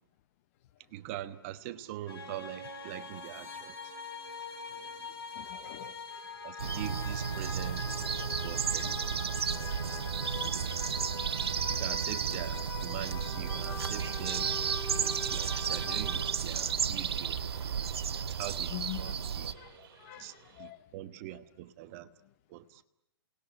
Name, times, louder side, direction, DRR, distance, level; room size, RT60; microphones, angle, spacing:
voice 1, 0.9-3.7 4.7-5.1 6.4-8.0 8.4-9.2 9.6-9.7 10.4-10.7 11.7-14.5 15.0-17.4 18.4-19.5 20.2-20.3 20.6-22.1 22.5-22.8, right 13 dB, 35° right, 1.1 m, -43 dB
sound 1, 2.1-16.3, left 5 dB, 70° left, 7.3 m, -43 dB
voice 2, 5.4-5.9 16.7-16.8 18.7-19.2 19.6-20.8, left 19 dB, 35° left, 0.9 m, -44 dB
sound 2, 6.6-19.5, right 7 dB, 80° right, 1.4 m, -33 dB
sound 3, 13.5-20.7, right 7 dB, 55° right, 5.3 m, -53 dB
28.0 x 19.5 x 9.8 m
hypercardioid pair, 155°, 13 cm